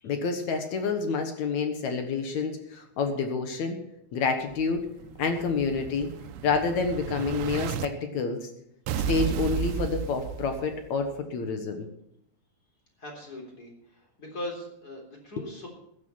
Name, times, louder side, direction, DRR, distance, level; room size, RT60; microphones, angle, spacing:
voice 1, 0.0-3.8 4.1-4.8 5.2-6.1 6.4-8.5 9.1-11.9 15.4-15.5, left 4 dB, 60° left, 6 dB, 2.0 m, -28 dB
Explosion, 4.5-7.9 8.9-10.9, right 8 dB, 85° right, 2.9 m, -33 dB
voice 2, 13.0-13.7 14.2-15.7, left 1 dB, 25° left, 1 dB, 3.6 m, -39 dB
15.0 x 10.5 x 5.7 m, 0.76 s
omnidirectional pair, 4.9 m